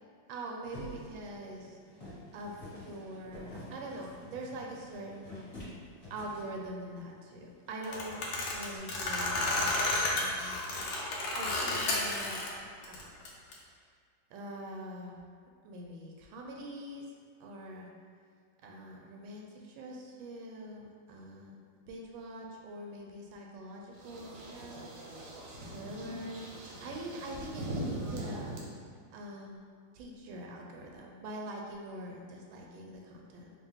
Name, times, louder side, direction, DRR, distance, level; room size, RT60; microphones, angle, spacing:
voice 1, 0.3-1.8 2.3-5.5 6.1-12.4 12.9-13.1 14.3-15.1 15.6-17.1 17.4-17.9 18.6-21.5 21.9-24.9 25.7-28.6 29.1-29.6 29.9-33.5, right 1 dB, 90° right, 0 dB, 1.4 m, -44 dB
sound 1, 0.6-6.9 7.2-7.3 7.5-7.9 8.2-8.8, left 1 dB, 40° left, 1.5 m, -49 dB
sound 2, 7.8-12.5 12.8-13.5, left 2 dB, 80° left, 1.4 m, -32 dB
sound 3, 23.9-28.6, right 1 dB, 65° right, 0.9 m, -41 dB
4.4 x 2.2 x 3.5 m, 2.2 s
omnidirectional pair, 2.1 m